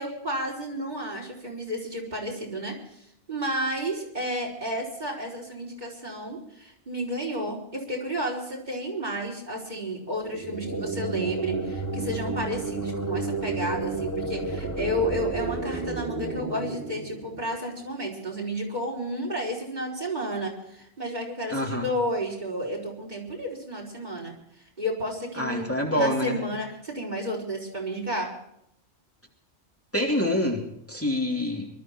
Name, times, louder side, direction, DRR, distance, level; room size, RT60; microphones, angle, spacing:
voice 1, 0.0-24.3 24.8-28.3, equal, 35° right, -1 dB, 5.0 m, -32 dB
sound 1, 10.2-17.8, right 3 dB, 85° left, 4.8 m, -31 dB
voice 2, 21.5-21.9 25.4-26.4 29.9-30.6 30.9-31.7, left 1 dB, 10° left, -1 dB, 2.9 m, -26 dB
23.5 x 12.5 x 4.5 m, 0.77 s
omnidirectional pair, 1.2 m